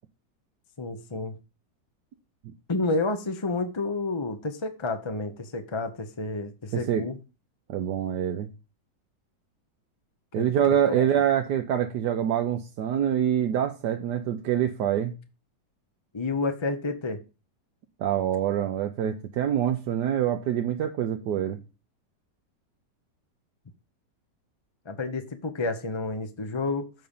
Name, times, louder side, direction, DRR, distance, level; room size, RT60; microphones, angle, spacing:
voice 1, 0.8-1.4 2.7-7.2 10.3-10.5 10.9-11.1 16.1-17.2 24.8-26.9, left 3 dB, 30° left, 0.5 m, -30 dB
voice 2, 6.7-7.1 7.7-8.5 10.3-15.1 18.0-21.6, right 9 dB, 70° right, 1.3 m, -25 dB
7.7 x 5.3 x 7.0 m
omnidirectional pair, 1.9 m